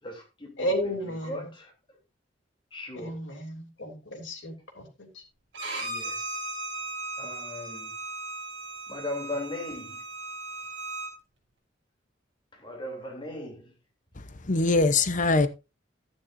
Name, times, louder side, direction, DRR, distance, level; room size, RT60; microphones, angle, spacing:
voice 1, 0.0-1.7 2.7-3.2 5.8-6.4 7.2-7.9 8.9-10.0 12.5-13.7, left 1 dB, 25° left, 3.4 m, -38 dB
voice 2, 0.6-1.4 3.0-4.8, equal, 80° left, 3.1 m, -32 dB
Bowed string instrument, 5.5-11.1, right 2 dB, 70° right, 6.1 m, -37 dB
voice 3, 14.2-15.5, left 3 dB, 45° left, 0.9 m, -23 dB
12.0 x 9.9 x 2.7 m
head